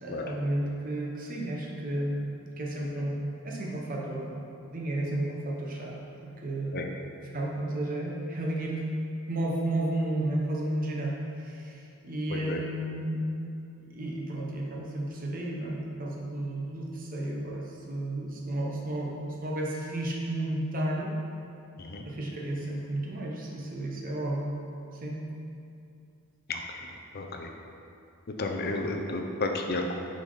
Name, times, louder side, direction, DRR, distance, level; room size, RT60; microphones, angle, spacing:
voice 1, 0.0-4.4 4.7-6.9 7.3-8.8 9.3-13.2 13.8-21.1 22.0-24.5 25.0-25.2, right 1 dB, 40° right, -2 dB, 0.8 m, -32 dB
voice 2, 27.1-27.5 28.4-29.9, left 2 dB, 45° left, 3 dB, 0.5 m, -32 dB
6.2 x 4.1 x 3.9 m, 2.6 s
head